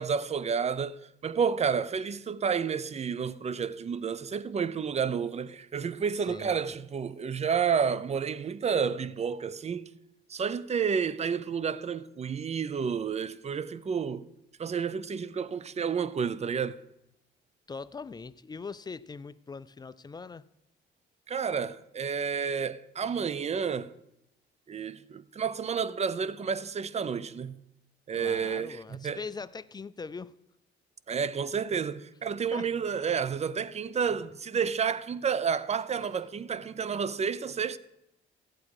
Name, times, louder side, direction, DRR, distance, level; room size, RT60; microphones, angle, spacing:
voice 1, 0.0-9.9 10.3-14.3 14.6-16.8 21.3-23.9 24.7-27.6 28.1-29.2 31.1-37.8, right 6 dB, 35° right, 0.6 m, -30 dB
voice 2, 6.3-6.6 17.7-20.4 28.1-30.3 32.5-32.7, left 4 dB, 20° left, 0.4 m, -41 dB
14.0 x 8.4 x 4.8 m
cardioid pair, 90°, 20 cm